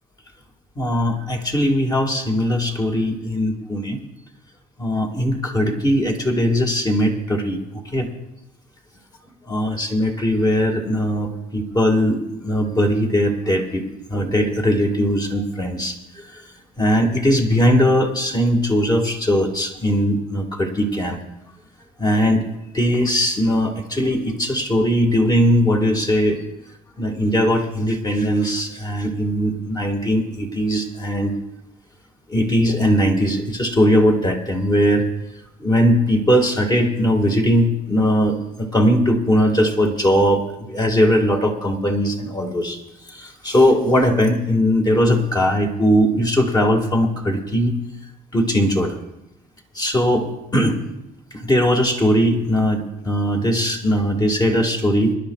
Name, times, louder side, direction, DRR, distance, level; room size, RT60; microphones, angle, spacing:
voice 1, 0.8-4.0 4.8-8.1 9.4-16.4 16.8-21.2 22.0-22.4 22.7-26.4 27.0-31.3 32.3-35.1 35.6-42.8 43.1-47.8 48.3-49.0 49.7-50.8 51.3-55.2, equal, 25° left, 2 dB, 1.9 m, -19 dB
25.0 x 11.0 x 2.4 m, 0.88 s
cardioid pair, 110°, 17 cm